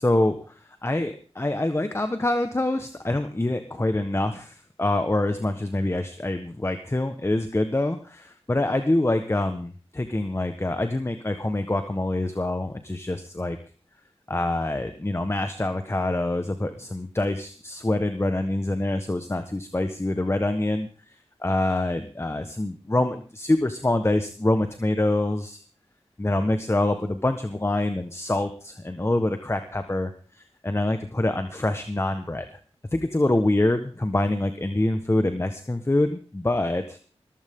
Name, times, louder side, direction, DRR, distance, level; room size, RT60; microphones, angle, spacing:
voice 1, 0.0-13.6 14.3-20.9 21.4-25.6 26.2-32.5 32.9-37.0, left 1 dB, 25° left, 8 dB, 1.3 m, -25 dB
21.0 x 15.0 x 3.8 m, 0.39 s
wide cardioid pair, 60°, 11 cm